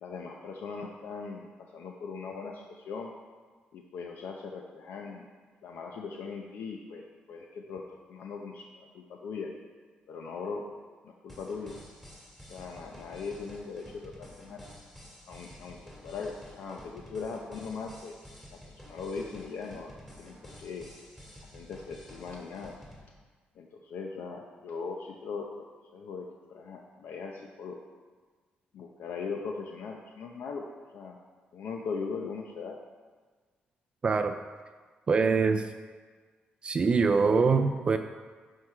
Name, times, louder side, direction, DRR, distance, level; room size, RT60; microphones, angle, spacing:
voice 1, 0.0-3.1 3.7-5.3 5.6-7.8 8.1-9.5 10.1-10.6 11.0-11.7 12.5-14.6 15.3-18.1 18.7-19.9 20.2-20.8 21.4-22.7 23.6-25.7 25.9-27.8 28.7-30.7 30.9-31.2 31.5-32.8, left 5 dB, 75° left, 1 dB, 0.7 m, -39 dB
sound 1, 11.3-23.0, equal, 10° left, 2.1 m, -50 dB
voice 2, 34.0-34.4 35.1-35.6 36.6-38.0, right 4 dB, 30° right, 7 dB, 0.4 m, -24 dB
12.0 x 4.7 x 4.8 m, 1.5 s
cardioid pair, 145°, 3 cm